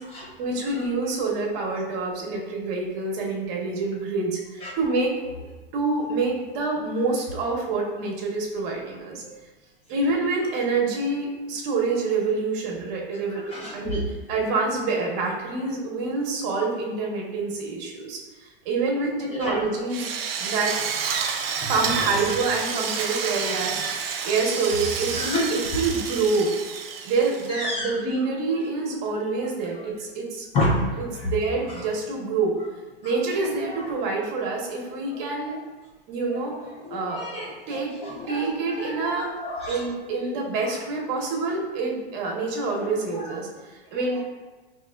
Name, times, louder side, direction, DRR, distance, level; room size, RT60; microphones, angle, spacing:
voice 1, 0.4-5.1 5.7-9.2 9.9-14.0 14.3-18.2 18.6-20.1 20.4-20.7 21.7-26.5 27.0-30.5 31.0-32.5 33.0-35.6 36.1-36.6 36.9-37.4 37.7-37.9 38.3-39.3 39.7-44.2, right 3 dB, 45° right, 0 dB, 0.9 m, -27 dB
voice 2, 13.3-14.0 19.3-19.6 21.6-21.7 25.1-25.4 27.5-27.9 30.5-30.8 36.9-39.8 40.2-40.3 43.2-43.3, left 2 dB, 20° left, -3 dB, 0.4 m, -29 dB
Drill, 19.9-27.8, right 6 dB, 75° right, 0.6 m, -30 dB
4.6 x 3.0 x 2.3 m, 1.3 s
supercardioid pair, 140°, 29 cm